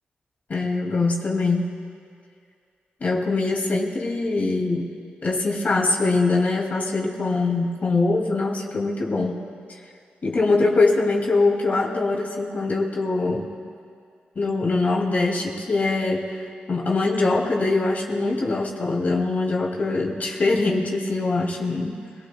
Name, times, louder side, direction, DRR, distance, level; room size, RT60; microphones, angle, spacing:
voice 1, 0.5-1.7 3.0-4.9 5.2-9.5 10.2-13.4 14.4-22.0, left 3 dB, 50° left, -1 dB, 2.4 m, -23 dB
25.5 x 19.0 x 2.3 m, 2.3 s
cardioid pair, 80°, 3 cm